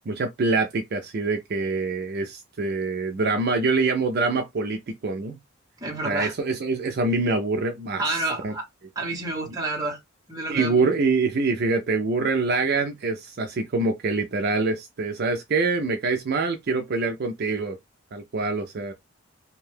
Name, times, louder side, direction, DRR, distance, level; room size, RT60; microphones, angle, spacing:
voice 1, 0.1-5.4 6.0-8.5 9.5-9.6 10.5-17.8 18.1-18.9, right 3 dB, 50° right, 0.4 m, -25 dB
voice 2, 5.8-6.3 8.0-8.6 9.0-10.0 10.3-10.9, right 2 dB, 15° right, 0.8 m, -29 dB
2.6 x 2.2 x 3.3 m
head